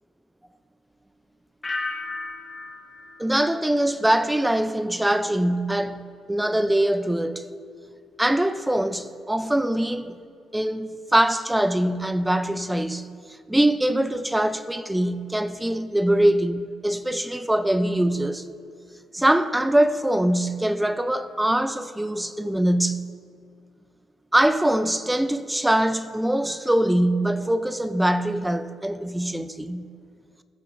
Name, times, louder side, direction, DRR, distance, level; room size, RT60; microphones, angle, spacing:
sound 1, 1.6-4.5 4.8-5.3, left 3 dB, 25° left, 0.9 m, -36 dB
voice 1, 3.2-6.0 6.3-7.5 8.2-10.1 10.5-13.1 13.5-18.5 19.1-23.1 24.3-29.9, right 1 dB, 5° right, 0.4 m, -23 dB
15.5 x 6.2 x 2.6 m
cardioid pair, 90°, 0 cm